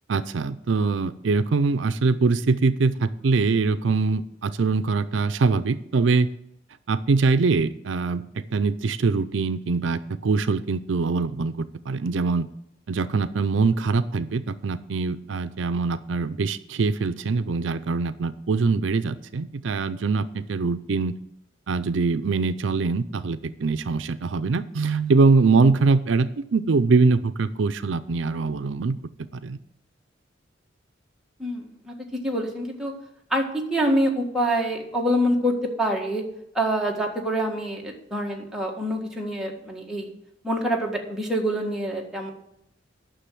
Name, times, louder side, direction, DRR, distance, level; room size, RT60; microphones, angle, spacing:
voice 1, 0.1-6.3 6.9-12.5 12.9-21.1 21.7-29.0 29.3-29.6, right 4 dB, 80° right, 12 dB, 0.5 m, -23 dB
voice 2, 31.4-31.9 32.2-32.9 33.3-36.2 36.5-40.1 40.4-42.3, equal, 5° right, -1 dB, 1.7 m, -26 dB
10.0 x 6.2 x 7.5 m, 0.78 s
head